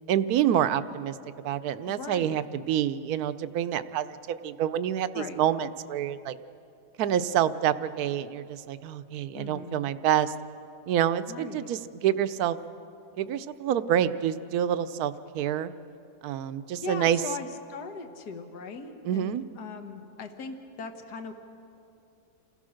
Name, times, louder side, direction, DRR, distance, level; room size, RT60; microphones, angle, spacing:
voice 1, 0.1-1.1 1.4-6.4 7.0-10.3 10.9-12.6 13.2-15.7 16.2-17.2 19.0-19.4, right 10 dB, 70° right, 13 dB, 1.1 m, -27 dB
voice 2, 1.9-2.4 5.1-5.4 9.3-9.9 11.3-11.7 16.8-21.3, left 5 dB, 70° left, 7 dB, 1.8 m, -39 dB
28.0 x 16.0 x 6.4 m, 2.7 s
omnidirectional pair, 1.8 m